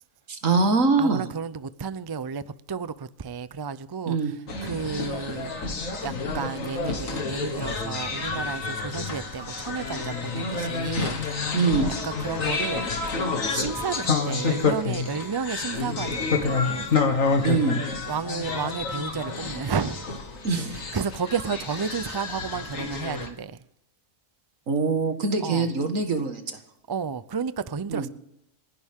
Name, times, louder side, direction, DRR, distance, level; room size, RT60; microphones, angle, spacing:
voice 1, 0.3-1.2 4.1-4.3 11.5-11.9 17.4-17.8 20.4-20.8 24.7-26.6 27.9-28.1, right 4 dB, 80° right, 2.1 m, -23 dB
voice 2, 1.0-5.5 6.0-11.5 12.0-12.9 13.5-16.9 18.1-20.1 20.7-23.6 25.4-25.7 26.9-28.1, right 6 dB, 35° right, 0.3 m, -32 dB
sound 1, 4.5-23.3, left 4 dB, 90° left, 2.1 m, -29 dB
29.5 x 11.0 x 3.7 m
omnidirectional pair, 1.3 m